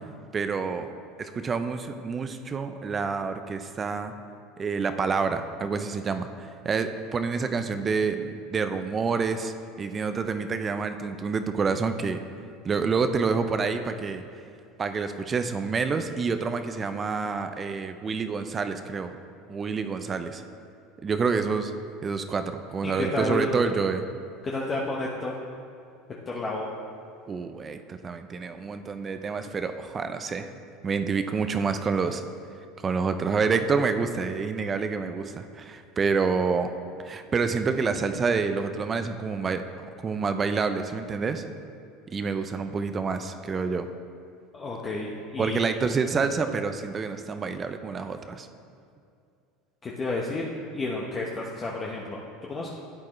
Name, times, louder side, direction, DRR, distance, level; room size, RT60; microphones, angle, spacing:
voice 1, 0.3-0.9 1.2-4.1 4.6-12.2 12.6-14.2 14.8-19.1 19.5-20.4 21.0-21.7 22.0-24.0 27.3-30.5 30.8-32.2 32.8-36.7 37.0-39.6 40.0-41.4 42.1-43.9 45.4-48.5, right 5 dB, 30° right, 9 dB, 0.6 m, -28 dB
voice 2, 22.8-23.5 24.4-25.3 26.3-26.7 44.5-45.6 49.8-50.4 50.7-52.2 52.5-52.7, left 2 dB, 30° left, -3 dB, 1.0 m, -31 dB
12.0 x 8.5 x 3.2 m, 2.5 s
supercardioid pair, 100°, 0 cm